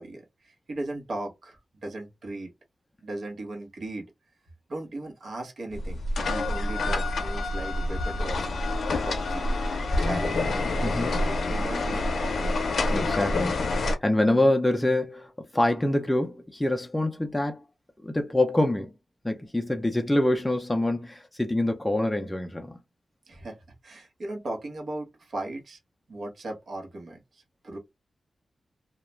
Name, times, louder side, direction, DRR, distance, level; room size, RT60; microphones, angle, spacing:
voice 1, 0.0-2.5 3.0-4.1 4.7-6.0 6.3-8.6 9.0-9.5 10.0-12.6 23.3-23.6 23.8-25.8 26.1-27.8, right 2 dB, 70° right, 0.8 m, -37 dB
sound 1, 5.7-14.0, left 2 dB, 80° left, 0.5 m, -27 dB
voice 2, 10.8-11.1 12.9-17.6 18.0-18.9 19.2-22.8, left 1 dB, 10° left, 0.4 m, -25 dB
2.3 x 2.1 x 3.0 m
wide cardioid pair, 80°, 0 cm